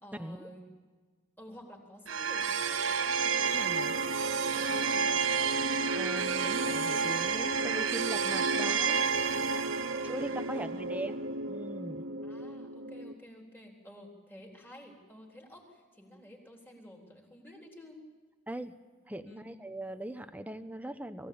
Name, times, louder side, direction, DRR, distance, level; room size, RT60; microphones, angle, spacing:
voice 1, 0.0-0.7 1.4-4.2 4.5-5.3 9.8-11.2 12.2-18.0 19.2-19.5, left 1 dB, 10° left, 0 dB, 3.8 m, -52 dB
sound 1, 2.1-13.1, right 5 dB, 80° right, 1.0 m, -30 dB
voice 2, 3.5-3.9 5.9-9.1 10.0-11.1 11.5-12.0 18.5-18.7 19.1-21.3, right 1 dB, 10° right, 9 dB, 1.0 m, -40 dB
22.5 x 16.5 x 8.6 m, 1.5 s
head